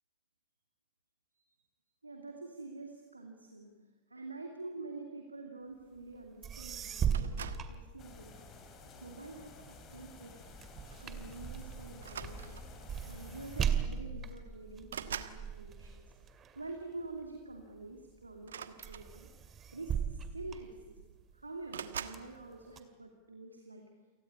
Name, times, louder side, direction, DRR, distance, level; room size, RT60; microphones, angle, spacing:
voice 1, 2.0-3.7 4.1-8.4 9.0-10.4 11.0-12.6 13.0-16.1 16.5-19.3 19.7-21.0 21.3-23.9, right 3 dB, 80° right, 3 dB, 2.6 m, -47 dB
sound 1, 6.2-6.3 6.4-8.5 9.0-17.6 18.2-18.5 18.8-21.3 21.8-22.8, right 7 dB, 25° right, 2.1 m, -38 dB
sound 2, 7.1-7.8 8.6-9.0 10.5-10.6 10.9-11.1 12.0-12.8 13.8-13.9 14.2-15.4 18.4-19.5 20.4-20.5 20.7-21.2 21.7-22.3, right 8 dB, 65° right, 1.4 m, -44 dB
sound 3, 8.0-13.6, left 3 dB, 30° left, 4.3 m, -51 dB
28.5 x 18.5 x 9.8 m, 1.3 s
figure-of-eight pair, 90°, 0 cm